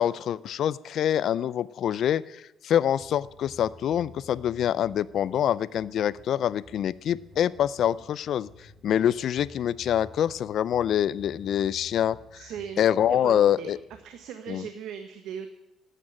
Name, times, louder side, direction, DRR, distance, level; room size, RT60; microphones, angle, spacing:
voice 1, 0.0-12.4 12.8-13.8 14.5-14.6, left 10 dB, 65° left, 18 dB, 0.5 m, -25 dB
sound 1, 3.0-14.0, equal, 10° right, 7.1 m, -52 dB
voice 2, 12.3-12.8 13.1-13.8 14.0-15.5, right 8 dB, 80° right, 8 dB, 1.2 m, -38 dB
12.5 x 9.1 x 9.9 m, 0.90 s
cardioid pair, 95°, 0 cm